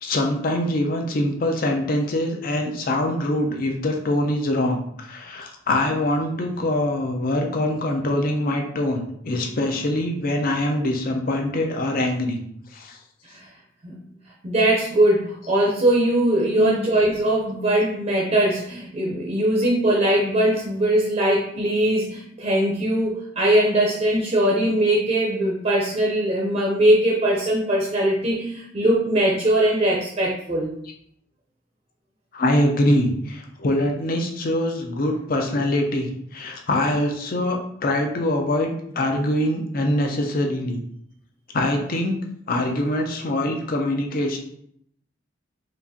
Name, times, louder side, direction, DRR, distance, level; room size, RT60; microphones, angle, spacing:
voice 1, 0.0-12.4 12.7-13.0 16.6-16.9 32.3-40.8 41.5-44.4, left 1 dB, 50° left, 3 dB, 0.6 m, -24 dB
voice 2, 14.4-30.7, right 1 dB, 35° right, -3 dB, 0.6 m, -21 dB
4.7 x 2.5 x 2.7 m, 0.70 s
head